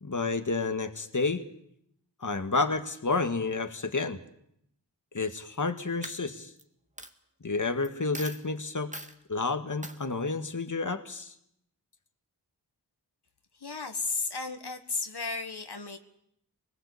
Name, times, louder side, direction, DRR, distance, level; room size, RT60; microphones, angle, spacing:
voice 1, 0.0-1.5 2.2-4.2 5.1-6.5 7.4-8.9 9.3-11.3, left 3 dB, 50° left, 8 dB, 1.9 m, -30 dB
Coin (dropping), 5.4-5.7 6.0-6.6 7.0-7.1 7.8-7.9 8.1-8.4 8.9-9.1 9.8-10.0, right 1 dB, 20° right, 2.1 m, -41 dB
voice 2, 13.6-16.0, left 4 dB, 75° left, 6 dB, 1.9 m, -34 dB
26.0 x 20.0 x 8.5 m, 0.73 s
wide cardioid pair, 55°, 40 cm